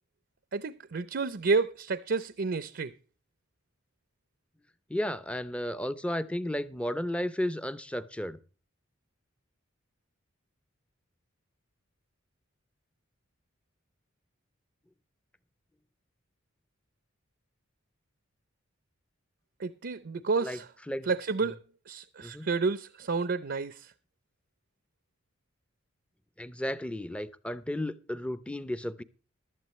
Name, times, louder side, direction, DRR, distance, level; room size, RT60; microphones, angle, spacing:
voice 1, 0.5-2.9 19.6-20.7 21.1-21.6 21.9-23.9, right 4 dB, 55° right, 0.6 m, -30 dB
voice 2, 4.9-8.4 20.4-20.6 20.9-21.1 22.2-22.5 26.4-29.0, left 1 dB, 5° left, 0.6 m, -33 dB
15.5 x 12.0 x 3.1 m
head